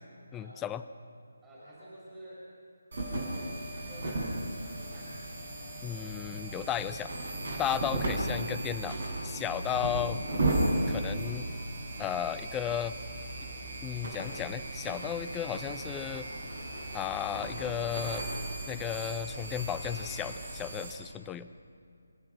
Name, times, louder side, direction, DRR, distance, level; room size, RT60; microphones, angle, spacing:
voice 1, 0.3-0.8 5.8-7.1 7.6-9.0 9.2-10.2 10.9-11.5 12.0-12.9 13.8-16.3 16.9-18.3 18.7-21.5, left 10 dB, 10° left, 13 dB, 0.5 m, -34 dB
voice 2, 1.4-2.5 3.7-4.3 4.6-5.1, right 1 dB, 5° right, -11 dB, 6.5 m, -50 dB
sound 1, 2.9-20.9, right 1 dB, 45° right, 6.5 m, -35 dB
29.5 x 15.5 x 6.3 m, 2.4 s
figure-of-eight pair, 150°, 0 cm